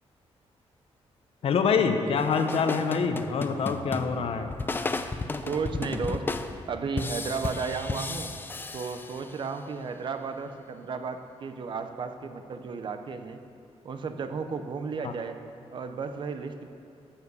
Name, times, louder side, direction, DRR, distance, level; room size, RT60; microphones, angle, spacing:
voice 1, 1.4-4.5 15.0-15.1, left 5 dB, 60° left, 7 dB, 0.9 m, -25 dB
sound 1, 2.2-9.6, left 3 dB, 20° left, 0.4 m, -34 dB
voice 2, 5.4-6.3 6.7-8.3 8.7-13.4 13.8-15.4 15.7-16.7, right 5 dB, 45° right, 8 dB, 0.6 m, -33 dB
13.0 x 7.2 x 6.8 m, 2.6 s
wide cardioid pair, 170°, 11 cm